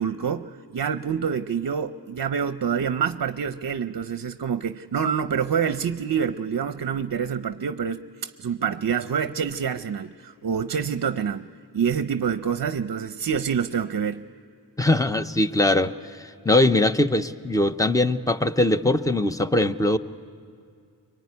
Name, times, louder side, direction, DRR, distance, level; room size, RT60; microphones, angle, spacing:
voice 1, 0.0-11.5 11.7-14.2, right 7 dB, 55° right, 11 dB, 0.6 m, -27 dB
voice 2, 14.8-15.9 16.2-20.0, left 2 dB, 10° left, 10 dB, 0.7 m, -21 dB
26.0 x 23.5 x 9.5 m, 2.3 s
wide cardioid pair, 110°, 42 cm